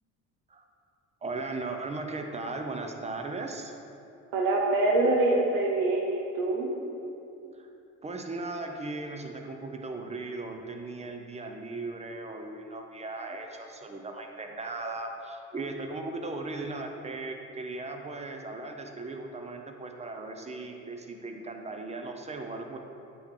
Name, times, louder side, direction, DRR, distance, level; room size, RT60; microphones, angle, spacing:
voice 1, 1.2-3.7 7.4-7.7 8.0-22.8, right 3 dB, 20° right, 4 dB, 0.6 m, -37 dB
voice 2, 4.3-6.7, right 2 dB, 80° right, -1 dB, 0.7 m, -25 dB
8.4 x 3.0 x 3.7 m, 2.8 s
cardioid pair, 90°, 33 cm